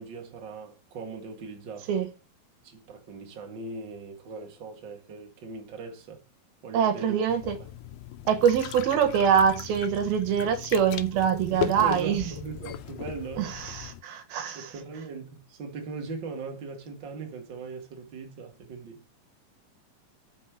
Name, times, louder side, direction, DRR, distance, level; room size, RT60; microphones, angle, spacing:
voice 1, 0.0-2.0 2.6-6.2 6.6-7.7 11.5-13.5 14.5-19.0, right 4 dB, 40° right, 2.0 m, -39 dB
voice 2, 6.7-7.6 8.3-12.3 13.4-14.7, right 8 dB, 80° right, 3.1 m, -24 dB
sound 1, 7.3-14.0, left 12 dB, 80° left, 2.3 m, -37 dB
6.2 x 5.5 x 6.8 m
omnidirectional pair, 4.2 m